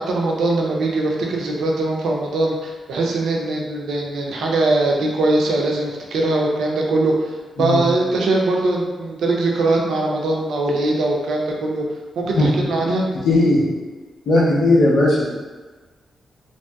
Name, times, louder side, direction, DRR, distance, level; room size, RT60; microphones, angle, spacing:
voice 1, 0.0-7.1 7.6-11.8 12.2-13.0, right 2 dB, 80° right, -1 dB, 0.5 m, -21 dB
voice 2, 13.2-13.6 14.3-15.2, left 2 dB, 90° left, -6 dB, 0.6 m, -16 dB
3.0 x 2.7 x 2.2 m, 1.3 s
wide cardioid pair, 175°, 0 cm